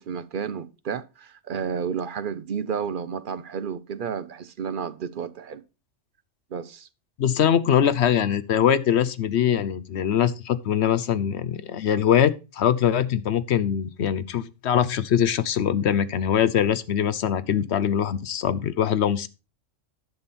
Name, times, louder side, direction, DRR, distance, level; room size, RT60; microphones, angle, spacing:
voice 1, 0.0-5.6 6.5-6.9, right 7 dB, 50° right, 0.7 m, -31 dB
voice 2, 7.2-19.3, left 9 dB, 65° left, 0.9 m, -22 dB
10.5 x 7.1 x 4.3 m
omnidirectional pair, 1.3 m